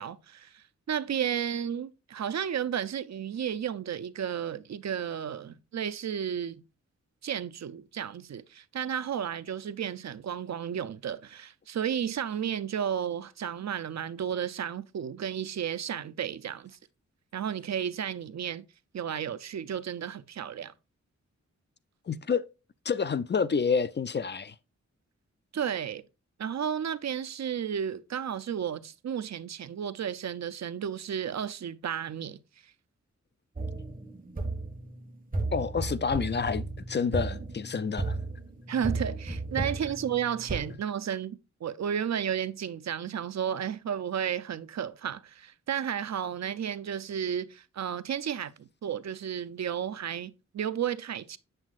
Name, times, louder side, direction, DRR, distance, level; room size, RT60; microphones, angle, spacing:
voice 1, 0.0-6.6 7.2-16.8 17.3-18.7 18.9-20.7 25.5-26.0 26.4-32.4 38.7-51.4, right 8 dB, 65° right, 0.5 m, -33 dB
voice 2, 22.1-22.4 22.9-24.5 35.5-38.2, left 5 dB, 40° left, 0.4 m, -28 dB
sound 1, 33.6-40.7, right 2 dB, 30° right, 1.6 m, -34 dB
7.8 x 7.1 x 2.4 m
wide cardioid pair, 100°, 29 cm